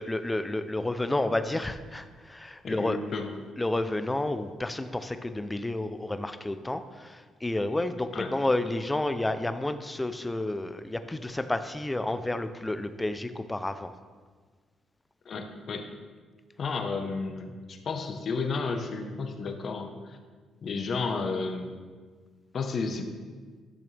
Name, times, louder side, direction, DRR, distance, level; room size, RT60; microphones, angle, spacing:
voice 1, 0.0-3.0 3.6-13.9, left 2 dB, 15° left, 10 dB, 0.6 m, -30 dB
voice 2, 2.6-3.4 8.1-8.3 15.2-15.9 16.6-20.2 20.6-21.7 22.5-23.1, left 4 dB, 55° left, 5 dB, 1.1 m, -32 dB
12.0 x 6.8 x 3.4 m, 1.5 s
cardioid pair, 90°, 0 cm